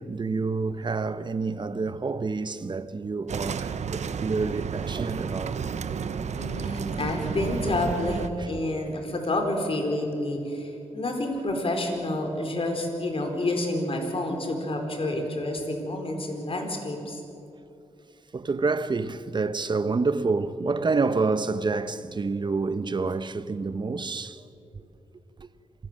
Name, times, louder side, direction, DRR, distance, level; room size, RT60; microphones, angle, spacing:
voice 1, 0.0-5.6 6.0-6.1 8.4-8.5 18.3-24.5 24.7-24.9 25.4-25.5, right 4 dB, 40° right, 1.0 m, -28 dB
sound 1, 3.3-8.3, right 6 dB, 70° right, 1.0 m, -32 dB
voice 2, 6.4-17.2, left 1 dB, 50° left, 4.4 m, -29 dB
26.5 x 17.0 x 7.6 m
cardioid pair, 80°, 12 cm